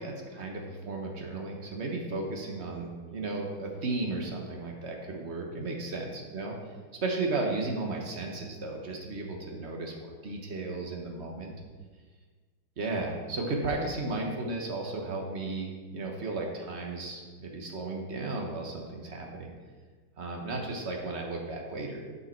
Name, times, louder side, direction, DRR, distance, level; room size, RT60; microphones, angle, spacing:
voice 1, 0.0-6.6 7.0-11.5 12.8-19.5 20.2-22.0, right 2 dB, 40° right, 0 dB, 1.2 m, -34 dB
11.0 x 5.6 x 4.5 m, 1.5 s
omnidirectional pair, 2.4 m